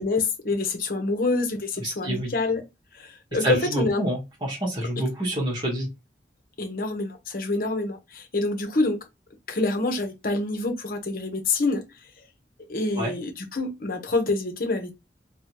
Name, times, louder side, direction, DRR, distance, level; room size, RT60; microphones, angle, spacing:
voice 1, 0.0-2.7 3.0-4.0 6.6-9.0 9.5-11.8 12.7-15.0, left 2 dB, 55° left, 0.9 m, -26 dB
voice 2, 1.8-2.3 3.4-5.9 12.9-13.1, right 1 dB, 25° right, 1.3 m, -27 dB
3.7 x 2.4 x 3.0 m
head